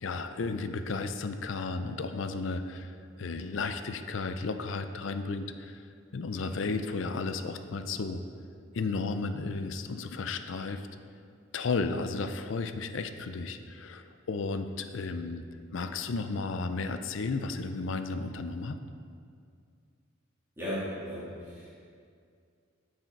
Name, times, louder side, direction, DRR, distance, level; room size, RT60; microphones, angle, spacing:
voice 1, 0.0-5.8 6.1-8.2 8.7-10.9 11.5-15.4 15.7-18.8, left 3 dB, 65° left, 9 dB, 0.5 m, -33 dB
voice 2, 6.3-6.7 20.6-21.7, equal, 15° right, -11 dB, 2.2 m, -37 dB
8.7 x 6.6 x 4.5 m, 2.3 s
head